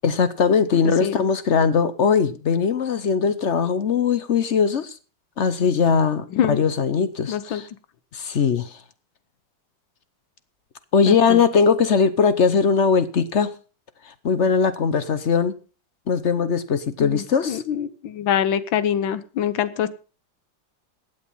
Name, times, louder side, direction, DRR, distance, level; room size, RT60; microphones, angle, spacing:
voice 1, 0.0-5.0 5.4-7.7 8.1-8.8 10.9-13.5 14.0-15.6 16.1-17.6, left 6 dB, 50° left, 0.9 m, -20 dB
voice 2, 7.3-7.6 11.1-11.4 17.0-19.9, left 9 dB, 90° left, 1.7 m, -24 dB
15.5 x 8.3 x 5.5 m
omnidirectional pair, 2.1 m